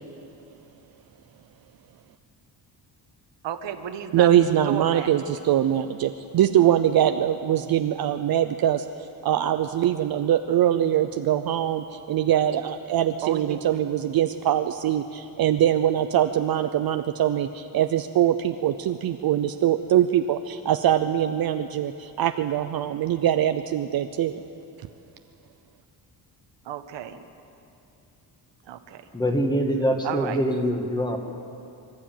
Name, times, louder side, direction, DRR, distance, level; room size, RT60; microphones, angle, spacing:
voice 1, 3.4-4.3 4.6-5.2 13.2-13.6 26.6-27.2 28.6-29.0 30.0-30.4, right 10 dB, 85° right, 8 dB, 1.3 m, -33 dB
voice 2, 4.1-24.4, right 11 dB, 55° right, 8 dB, 0.7 m, -23 dB
voice 3, 29.1-31.2, equal, 10° left, 3 dB, 1.6 m, -24 dB
24.5 x 13.0 x 9.1 m, 2.7 s
cardioid pair, 160°, 42 cm